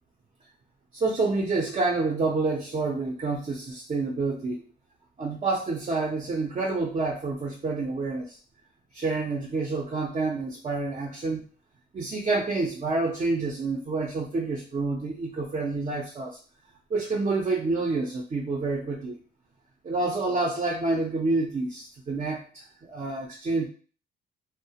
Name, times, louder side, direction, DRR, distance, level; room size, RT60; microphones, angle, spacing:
voice 1, 0.9-4.6 5.2-8.4 8.9-11.4 11.9-16.4 16.9-19.2 19.8-23.7, right 3 dB, 30° right, 0 dB, 0.5 m, -28 dB
2.3 x 2.0 x 2.7 m, 0.39 s
cardioid pair, 90°, 20 cm